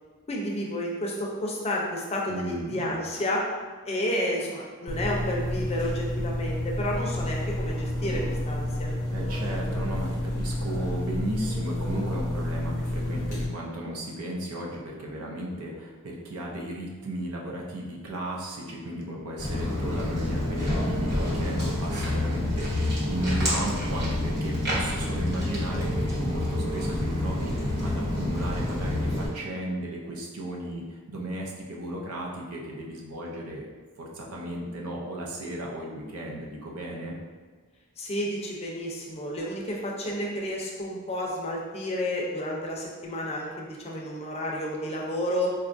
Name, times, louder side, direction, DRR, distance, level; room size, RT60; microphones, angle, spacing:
voice 1, 0.3-3.4 3.9-8.9 38.0-45.5, left 1 dB, 30° left, -2 dB, 0.5 m, -31 dB
voice 2, 2.3-2.9 9.1-33.7 34.0-37.1, right 1 dB, 75° right, -2 dB, 0.6 m, -35 dB
sound 1, 4.9-13.5, left 1 dB, 85° left, 0.6 m, -30 dB
Walk footsteps, 19.4-29.3, left 1 dB, 50° right, 1.1 m, -28 dB
3.9 x 2.4 x 2.5 m, 1.4 s
head